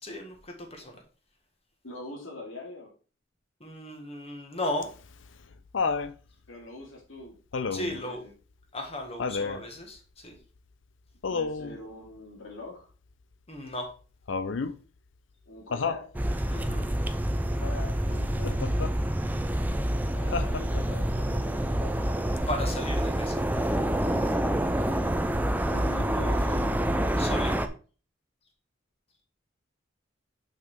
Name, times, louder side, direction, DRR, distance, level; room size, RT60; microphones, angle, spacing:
voice 1, 0.0-1.0 3.6-4.9 7.7-8.2 8.7-10.4 13.5-13.9 16.5-16.9 22.5-23.4 27.2-27.7, left 1 dB, 30° left, 3 dB, 1.8 m, -35 dB
voice 2, 1.8-2.9 6.5-7.4 7.9-8.3 11.3-12.9 15.5-16.1 17.6-18.6 20.1-22.1 25.6-26.8, left 2 dB, 85° left, -2 dB, 2.5 m, -43 dB
Laughter, 4.8-6.1 7.5-8.0 9.2-9.6 11.2-11.8 14.3-14.8 15.7-16.1 18.4-18.9 20.3-21.0 22.4-22.5, left 4 dB, 70° left, 0.6 m, -30 dB
sound 1, 16.1-27.7, right 1 dB, 10° right, 0.5 m, -27 dB
6.6 x 6.2 x 3.7 m, 0.37 s
head